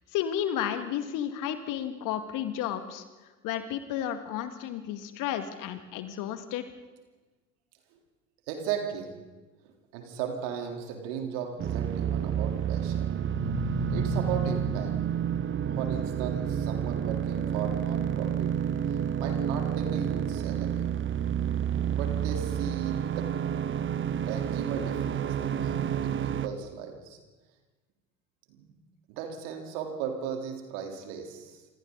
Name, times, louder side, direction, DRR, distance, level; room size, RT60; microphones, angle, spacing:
voice 1, 0.1-3.0 3.4-6.6, left 10 dB, 50° left, 8 dB, 2.2 m, -32 dB
voice 2, 8.5-9.2 9.6-13.1 13.9-14.9 15.7-18.6 18.9-20.8 21.9-23.3 24.3-25.8 26.0-27.2 28.5-28.6 29.1-31.6, right 7 dB, 60° right, 3 dB, 3.8 m, -36 dB
sound 1, 11.6-26.5, right 9 dB, 30° right, 1.1 m, -29 dB
sound 2, 13.1-16.8, left 1 dB, 85° right, 4.5 m, -37 dB
27.0 x 27.0 x 4.1 m, 1.2 s
figure-of-eight pair, 65°, 41 cm